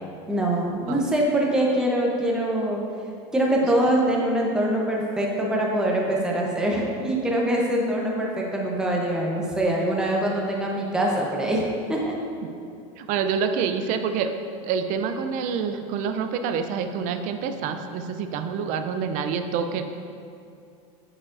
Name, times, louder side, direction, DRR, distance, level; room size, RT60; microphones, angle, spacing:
voice 1, 0.3-2.8 3.3-11.6 11.9-12.1, right 1 dB, 5° right, -2 dB, 0.8 m, -24 dB
voice 2, 13.0-14.3 14.6-19.8, right 6 dB, 50° right, 7 dB, 0.5 m, -27 dB
8.2 x 5.0 x 2.5 m, 2.5 s
supercardioid pair, 130°, 17 cm